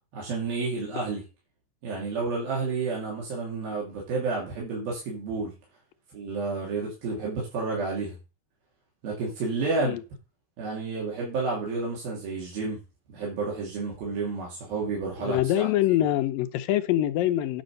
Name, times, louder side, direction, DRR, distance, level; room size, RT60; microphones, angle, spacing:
voice 1, 0.1-1.2 1.8-5.5 6.1-8.2 9.0-10.0 10.6-12.8 13.1-15.7, right 4 dB, 85° right, 4.7 m, -30 dB
voice 2, 15.2-17.6, left 13 dB, 80° left, 2.4 m, -24 dB
10.0 x 5.3 x 6.5 m
omnidirectional pair, 4.1 m